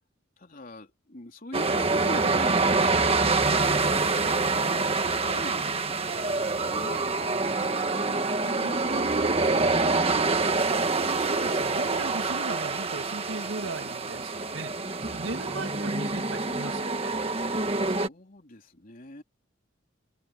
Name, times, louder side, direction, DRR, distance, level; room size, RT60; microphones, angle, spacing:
voice 1, 0.4-10.2 15.9-19.2, left 1 dB, 45° left, 3.7 m, -44 dB
sound 1, 1.5-18.1, right 3 dB, 30° right, 1.6 m, -26 dB
voice 2, 11.2-14.7 15.0-17.1, right 3 dB, 80° right, 1.7 m, -37 dB
open air
head